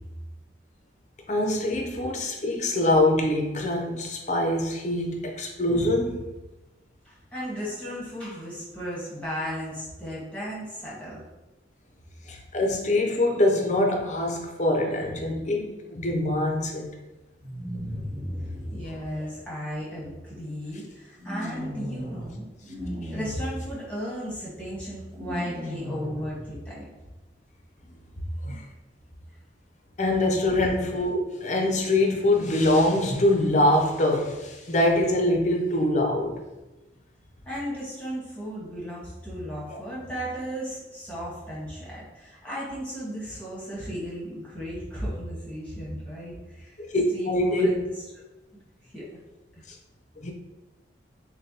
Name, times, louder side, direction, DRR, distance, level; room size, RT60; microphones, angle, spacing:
voice 1, 1.3-6.3 12.3-16.9 18.9-19.0 23.0-23.1 28.4-28.7 30.0-36.4 39.7-39.8 46.8-47.7 50.2-50.3, left 1 dB, 40° left, 2 dB, 0.6 m, -24 dB
voice 2, 7.0-11.2 18.7-22.5 23.1-26.9 28.2-28.3 37.4-46.8 47.1-47.9 48.9-49.1 49.5-49.6, equal, 5° left, -7 dB, 1.3 m, -35 dB
sound 1, 17.4-18.8 21.2-22.3 22.6-23.3 25.1-26.3, equal, 40° right, 1.1 m, -35 dB
6.5 x 2.2 x 2.8 m, 1.1 s
head